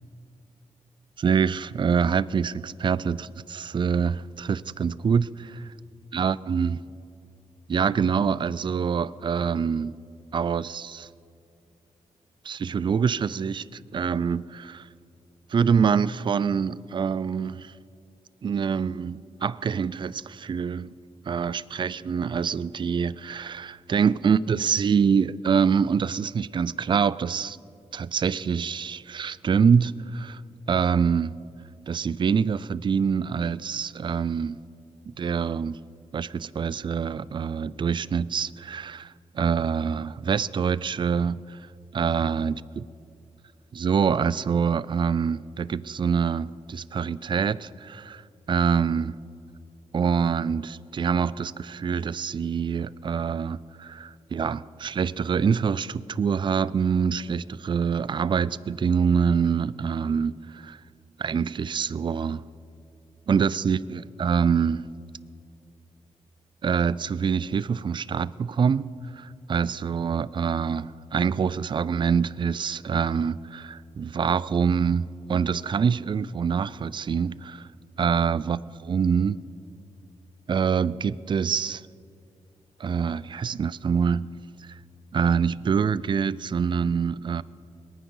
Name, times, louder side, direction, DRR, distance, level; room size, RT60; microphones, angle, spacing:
voice 1, 1.2-5.7 6.1-6.8 7.7-9.9 10.3-11.1 12.4-14.9 15.5-17.7 18.4-20.9 21.3-27.6 27.9-30.4 30.7-31.4 31.9-34.6 35.1-35.8 36.1-41.6 41.9-42.8 43.7-48.2 48.5-49.1 49.9-60.8 61.2-62.4 63.3-64.9 66.6-77.7 78.0-79.4 80.5-81.8 82.8-84.4 84.6-84.8 85.1-87.4, right 6 dB, 40° right, 0.4 m, -25 dB
21.0 x 9.5 x 5.5 m
cardioid pair, 80°, 12 cm